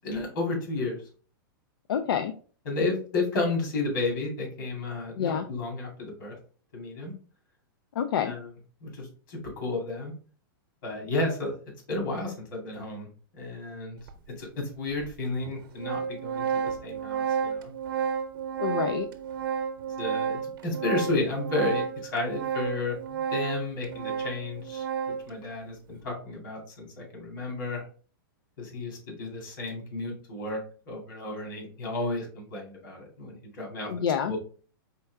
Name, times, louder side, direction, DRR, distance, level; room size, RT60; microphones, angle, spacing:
voice 1, 0.0-1.0 2.7-6.4 6.7-7.1 8.3-8.5 8.8-10.1 10.8-11.5 11.9-13.1 13.3-14.0 14.4-17.7 20.0-24.9 25.3-27.8 28.6-30.6 30.9-33.9 34.3-34.4, left 3 dB, 60° left, 0 dB, 2.4 m, -32 dB
voice 2, 1.9-2.3 5.1-5.5 8.0-8.3 18.6-19.1 33.9-34.4, left 8 dB, 85° left, 8 dB, 0.5 m, -27 dB
Organ, 14.1-14.2 15.0-15.1 15.4-25.3, right 7 dB, 65° right, 0.8 m, -31 dB
4.4 x 3.5 x 3.4 m, 0.41 s
supercardioid pair, 165°, 12 cm